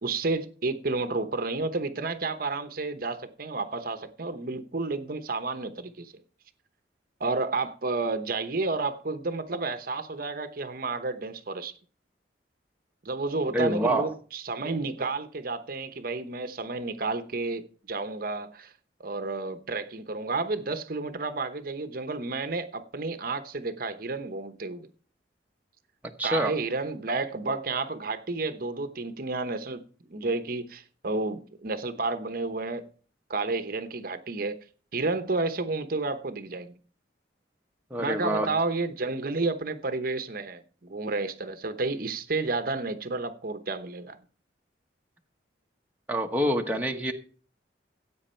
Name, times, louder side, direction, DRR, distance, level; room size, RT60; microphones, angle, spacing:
voice 1, 0.0-6.1 7.2-11.7 13.0-18.7 19.0-24.9 26.2-29.8 30.1-32.8 33.3-34.5 34.9-36.7 38.0-44.2, right 3 dB, 50° right, 0.9 m, -31 dB
voice 2, 13.5-14.1 26.2-26.5 37.9-38.5 46.1-47.1, right 1 dB, 10° right, 1.1 m, -26 dB
15.5 x 8.3 x 4.4 m
head